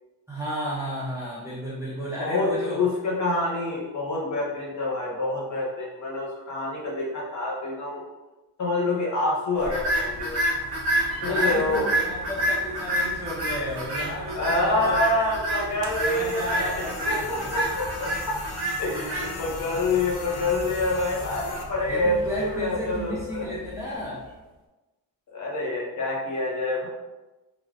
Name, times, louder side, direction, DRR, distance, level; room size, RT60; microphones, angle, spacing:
voice 1, 0.3-2.8 11.2-15.0 15.5-15.6 16.0-17.6 21.9-24.2, equal, 5° right, -7 dB, 0.4 m, -33 dB
voice 2, 2.1-8.0 8.6-10.4 11.2-11.9 14.3-18.4 18.8-23.5 25.3-26.9, left 2 dB, 45° left, -5 dB, 0.9 m, -27 dB
sound 1, 9.6-24.0, right 1 dB, 35° right, 0.8 m, -30 dB
sound 2, 15.8-21.6, left 4 dB, 65° left, 0.5 m, -39 dB
3.3 x 2.5 x 2.4 m, 1.1 s
wide cardioid pair, 155°, 41 cm